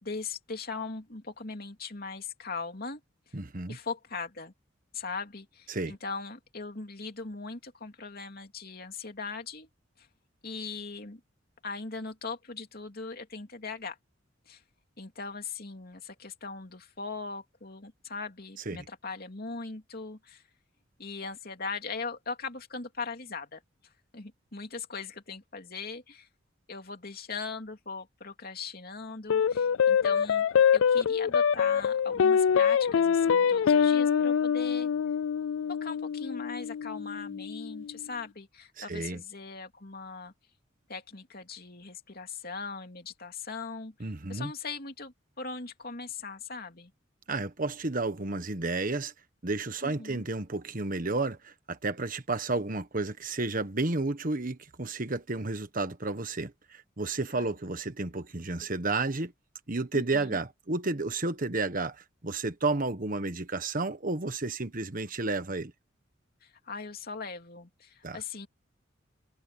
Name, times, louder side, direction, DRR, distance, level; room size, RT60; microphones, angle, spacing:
voice 1, 0.0-3.0 3.3-3.4 3.7-4.5 4.9-9.7 10.0-10.1 10.4-11.2 11.6-14.0 14.5-14.6 15.0-20.4 21.0-23.6 24.1-26.3 26.7-34.9 35.7-40.3 40.9-46.9 49.8-50.2 57.3-57.5 59.9-60.4 66.4-68.5, left 4 dB, 50° left, 2.9 m, -40 dB
voice 2, 3.3-3.8 5.7-6.0 18.7-18.8 38.8-39.2 44.0-44.5 47.3-49.1 49.4-59.3 59.7-65.7 68.0-68.2, right 3 dB, 45° right, 1.4 m, -32 dB
sound 1, 29.3-37.9, left 7 dB, 85° left, 0.4 m, -25 dB
head